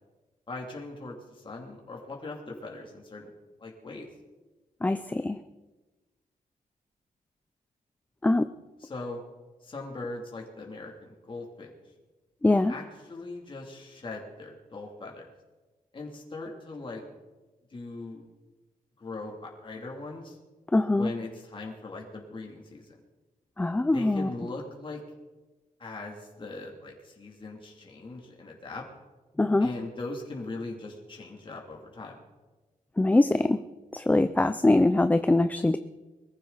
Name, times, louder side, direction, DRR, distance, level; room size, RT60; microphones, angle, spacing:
voice 1, 0.5-3.3 3.6-4.1 8.8-9.2 9.6-11.7 12.7-15.3 15.9-17.0 17.7-18.2 19.0-20.4 21.0-22.9 23.9-25.0 25.8-28.8 29.6-32.2, left 2 dB, 35° left, -1 dB, 2.8 m, -40 dB
voice 2, 4.8-5.4 8.2-8.5 12.4-12.7 20.7-21.1 23.6-24.3 29.4-29.7 33.0-33.6 33.9-35.8, left 2 dB, 10° left, 10 dB, 0.5 m, -23 dB
22.5 x 14.5 x 4.1 m, 1.2 s
wide cardioid pair, 120°, 15 cm